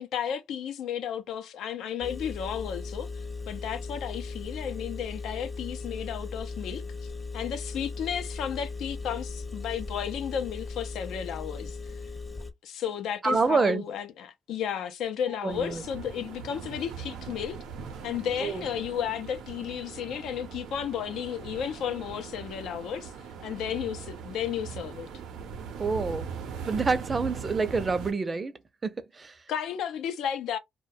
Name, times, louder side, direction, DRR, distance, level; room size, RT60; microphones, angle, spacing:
voice 1, 0.0-12.0 12.6-17.6 18.0-23.1 23.4-25.1 29.5-30.6, left 8 dB, 80° left, 0.5 m, -33 dB
Engine, 2.0-12.5, left 3 dB, 20° left, 0.6 m, -38 dB
voice 2, 13.2-13.8 15.4-15.8 18.4-18.6 25.8-26.3 26.6-28.5 28.8-29.4, right 4 dB, 30° right, 0.5 m, -27 dB
sound 1, 15.5-28.1, right 6 dB, 90° right, 0.6 m, -40 dB
2.2 x 2.1 x 2.6 m
cardioid pair, 90°, 0 cm